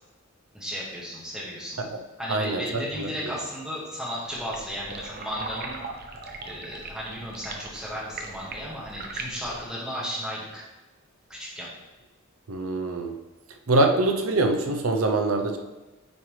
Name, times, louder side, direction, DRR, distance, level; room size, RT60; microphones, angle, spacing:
voice 1, 0.5-1.8 2.2-5.8 6.4-10.6 11.3-11.7, equal, 5° right, -6 dB, 1.9 m, -34 dB
voice 2, 2.3-3.3 12.5-13.2 13.7-15.6, right 2 dB, 85° right, 4 dB, 0.7 m, -24 dB
sound 1, 4.3-9.7, right 3 dB, 45° right, 0.8 m, -39 dB
9.2 x 4.8 x 3.3 m, 1.1 s
head